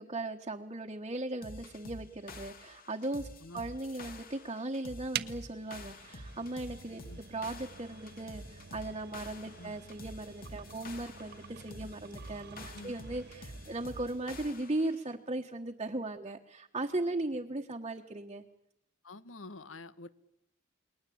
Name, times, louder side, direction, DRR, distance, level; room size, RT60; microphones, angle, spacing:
voice 1, 0.0-3.3 3.5-7.0 7.3-18.4, right 2 dB, 30° right, 2 dB, 1.3 m, -37 dB
sound 1, 1.4-15.0, left 1 dB, 50° left, 2.5 m, -48 dB
sound 2, 5.1-14.3, right 8 dB, 55° right, 1.0 m, -47 dB
voice 2, 19.0-20.1, left 2 dB, 80° left, 15 dB, 1.2 m, -48 dB
29.0 x 21.5 x 8.7 m, 0.80 s
head